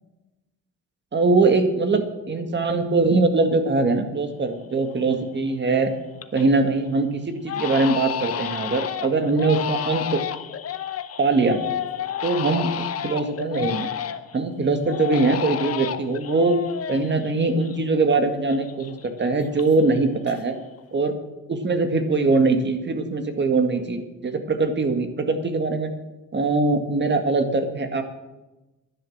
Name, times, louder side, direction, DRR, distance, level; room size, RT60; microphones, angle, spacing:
voice 1, 1.1-5.9 6.3-10.2 11.2-11.6 12.2-13.9 14.3-16.6 16.9-20.6 20.9-21.2 21.5-25.9 26.3-28.0, right 3 dB, 35° right, 7 dB, 1.9 m, -22 dB
Crying sobbing, 4.3-4.4 4.9-5.3 5.7-6.6 6.9-7.0 7.5-14.4 14.9-18.2 18.5-20.0 20.2-20.8, left 9 dB, 55° left, 0.9 m, -31 dB
11.0 x 10.5 x 7.2 m, 1.1 s
cardioid pair, 90°, 30 cm